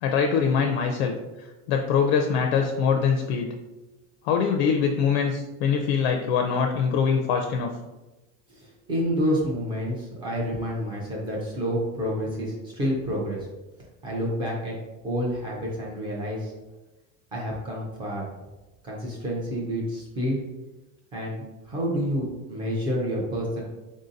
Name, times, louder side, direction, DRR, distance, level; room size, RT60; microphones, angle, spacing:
voice 1, 0.0-3.5 4.2-7.7, left 6 dB, 60° left, 3 dB, 0.4 m, -23 dB
voice 2, 8.5-13.5 14.0-14.8 15.0-16.5 17.3-18.3 18.8-20.4 21.1-23.6, equal, 15° right, -3 dB, 0.3 m, -29 dB
3.7 x 2.7 x 3.8 m, 1.1 s
cardioid pair, 180°, 36 cm